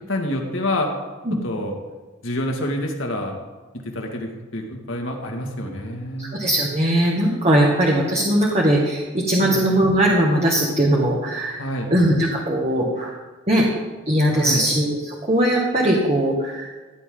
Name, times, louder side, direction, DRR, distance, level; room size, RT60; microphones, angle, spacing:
voice 1, 0.1-0.9 1.3-1.8 2.2-3.3 3.8-6.4 9.4-9.6 11.6-11.9 14.3-14.7, left 1 dB, 75° left, 1 dB, 2.2 m, -27 dB
voice 2, 6.2-11.6 11.9-13.2 13.5-13.7 14.1-16.7, right 1 dB, 35° right, -2 dB, 1.7 m, -20 dB
16.5 x 10.5 x 3.9 m, 1.3 s
head